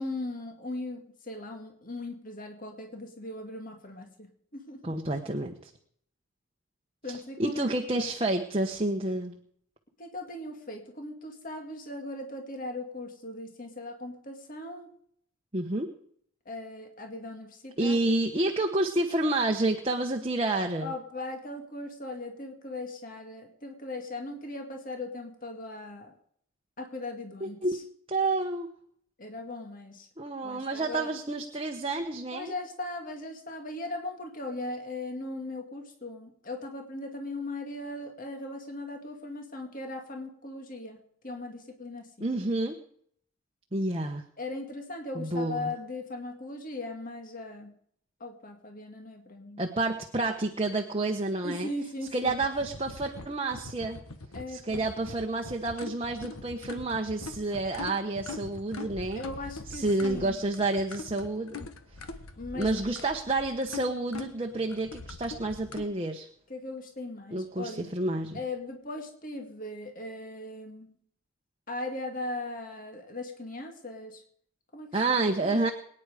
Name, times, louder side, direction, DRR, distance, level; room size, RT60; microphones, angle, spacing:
voice 1, 0.0-5.2 7.0-7.7 7.9-8.1 10.0-14.9 16.5-18.0 20.8-26.1 26.8-27.8 29.2-30.1 30.4-31.1 32.3-42.3 44.4-47.7 48.2-49.6 51.4-52.4 54.3-54.9 59.1-60.4 62.4-62.7 66.5-67.9 68.3-71.0 71.7-74.2 74.7-75.7, left 2 dB, 40° left, 4 dB, 2.0 m, -39 dB
voice 2, 4.8-5.7 7.1-9.3 15.5-15.9 17.8-20.9 27.4-27.8 28.1-28.7 30.2-32.5 42.2-42.8 43.7-44.2 45.1-45.7 49.6-51.7 52.1-54.0 54.5-59.2 59.7-61.6 62.5-66.3 67.3-68.4 74.9-75.7, right 2 dB, 25° right, 3 dB, 1.0 m, -29 dB
sound 1, 52.2-65.8, left 3 dB, 80° left, 1.4 m, -43 dB
23.0 x 9.8 x 5.0 m, 0.65 s
head